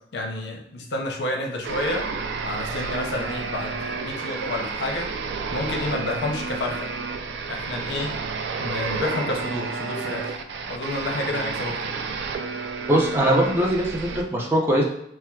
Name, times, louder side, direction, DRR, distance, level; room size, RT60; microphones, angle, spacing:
voice 1, 0.1-2.1 2.4-5.1 5.5-6.9 7.5-8.2 8.6-10.4 10.7-11.8, left 2 dB, 70° left, 1 dB, 0.6 m, -29 dB
sound 1, 1.6-14.2, right 4 dB, 80° right, 0.3 m, -31 dB
voice 2, 12.9-14.8, right 1 dB, 15° right, -3 dB, 0.5 m, -21 dB
4.4 x 2.2 x 2.2 m, 0.77 s
head